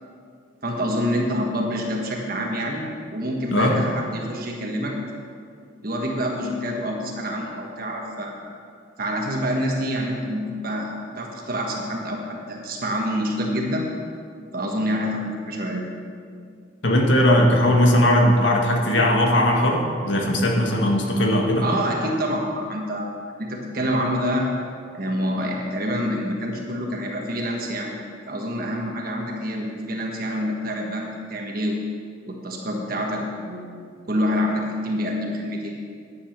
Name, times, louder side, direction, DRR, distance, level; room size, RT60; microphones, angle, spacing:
voice 1, 0.6-2.9 3.1-4.9 5.8-8.5 9.0-13.9 14.5-15.8 21.6-23.1 23.4-24.4 24.9-27.9 28.3-31.8 32.3-35.7, equal, 50° right, 0 dB, 1.4 m, -27 dB
voice 2, 16.8-21.6, left 1 dB, 75° left, 0 dB, 1.8 m, -18 dB
10.5 x 8.0 x 6.6 m, 2.2 s
head